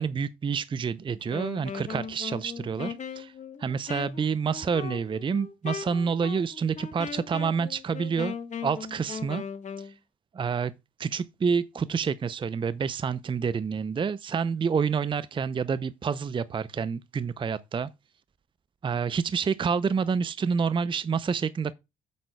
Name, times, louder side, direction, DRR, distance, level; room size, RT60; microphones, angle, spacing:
voice 1, 0.0-3.3 3.6-8.3 8.6-9.4 9.8-9.9 10.3-10.7 11.0-17.9 18.8-21.7, right 6 dB, 30° right, 0.5 m, -28 dB
Wind instrument woodwind instrument, 1.2-9.9, left 6 dB, 45° left, 1.3 m, -38 dB
9.4 x 7.5 x 2.2 m
hypercardioid pair, 55°, 18 cm